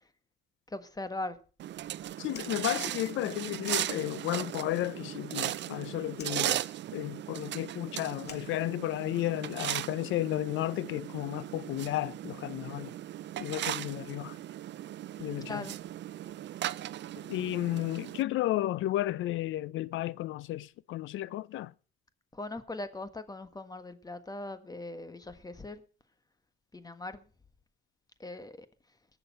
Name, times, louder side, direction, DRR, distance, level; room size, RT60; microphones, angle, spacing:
voice 1, 0.7-1.4 15.4-15.8 22.3-25.8 26.7-27.2 28.2-28.7, left 2 dB, 20° left, 1.6 m, -40 dB
sound 1, 1.6-18.2, right 12 dB, 65° right, 0.6 m, -37 dB
voice 2, 2.2-6.6 6.9-12.9 13.4-14.4 15.2-15.7 17.3-21.7, left 15 dB, 80° left, 0.5 m, -33 dB
Fire, 2.2-4.5 4.7-5.7 6.1-9.3, left 6 dB, 55° left, 2.2 m, -53 dB
19.5 x 6.9 x 5.5 m
cardioid pair, 90°, 20 cm